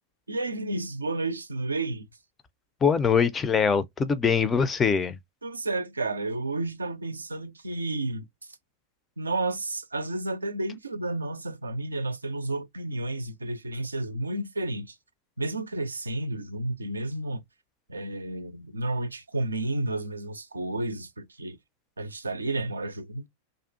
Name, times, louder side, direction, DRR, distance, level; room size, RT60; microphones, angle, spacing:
voice 1, 0.3-2.1 5.4-8.6 9.2-15.0 15.4-17.4 17.9-21.6 22.0-23.3, right 2 dB, 80° right, 0.4 m, -31 dB
voice 2, 2.8-5.2, left 6 dB, 20° left, 0.4 m, -23 dB
2.5 x 2.3 x 2.5 m
figure-of-eight pair, 90°, 0 cm